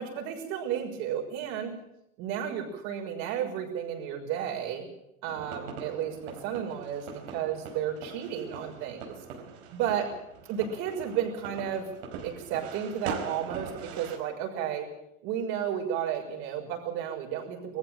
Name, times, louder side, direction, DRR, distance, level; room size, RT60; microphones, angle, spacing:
voice 1, 0.0-1.7 2.2-4.9 5.2-9.2 9.7-10.1 10.5-11.9 12.2-14.9 15.2-17.8, right 9 dB, 60° right, 0 dB, 6.3 m, -32 dB
sound 1, 5.2-14.2, right 6 dB, 85° right, 4.6 m, -42 dB
21.0 x 14.5 x 9.1 m, 0.82 s
cardioid pair, 160°, 33 cm